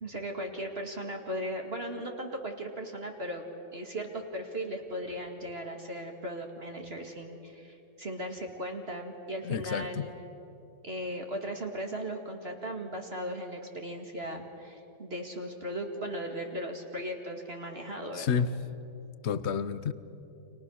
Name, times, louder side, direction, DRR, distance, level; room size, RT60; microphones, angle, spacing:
voice 1, 0.0-3.4 3.7-10.1 10.8-18.3, equal, 35° right, 2 dB, 2.2 m, -37 dB
voice 2, 9.4-10.1 18.1-18.6 19.2-19.9, left 6 dB, 50° left, 14 dB, 0.9 m, -30 dB
30.0 x 26.0 x 6.5 m, 3.0 s
omnidirectional pair, 2.0 m